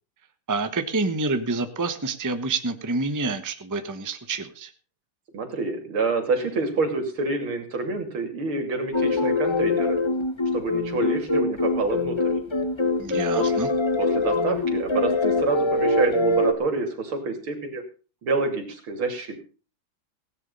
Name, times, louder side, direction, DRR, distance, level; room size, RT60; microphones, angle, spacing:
voice 1, 0.5-4.7 13.0-13.7, right 3 dB, 10° right, 8 dB, 0.9 m, -27 dB
voice 2, 5.3-10.0 10.5-12.3 13.4-13.5 14.0-17.8 18.2-19.4, right 3 dB, 75° right, 5 dB, 3.6 m, -27 dB
sound 1, 8.9-16.5, left 2 dB, 15° left, 1.1 m, -23 dB
16.5 x 9.9 x 5.5 m, 0.37 s
omnidirectional pair, 2.3 m